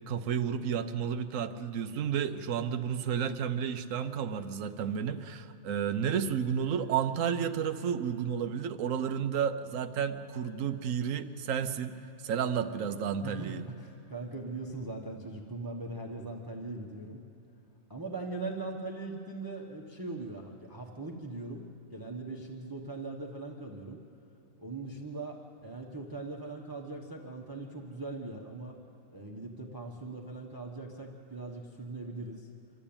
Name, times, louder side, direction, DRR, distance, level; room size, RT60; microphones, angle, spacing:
voice 1, 0.1-11.9 12.2-13.6, right 8 dB, 70° right, 8 dB, 1.1 m, -31 dB
voice 2, 13.2-17.2 17.9-21.7 21.9-24.0 24.6-28.8 29.1-32.5, right 2 dB, 15° right, 0 dB, 1.1 m, -40 dB
25.5 x 12.5 x 8.8 m, 3.0 s
omnidirectional pair, 1.4 m